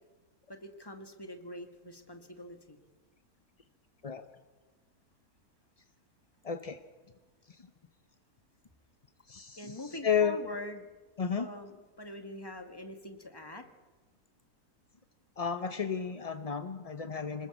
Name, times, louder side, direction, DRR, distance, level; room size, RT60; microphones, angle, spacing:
voice 1, 0.5-2.8 9.6-10.9 11.4-13.7, left 1 dB, 15° left, 6 dB, 1.9 m, -44 dB
voice 2, 6.4-6.8 7.5-7.6 9.3-9.8 10.0-10.4 11.2-11.5 15.4-17.5, left 7 dB, 35° left, 8 dB, 0.6 m, -32 dB
26.0 x 20.0 x 7.2 m, 1.3 s
omnidirectional pair, 1.7 m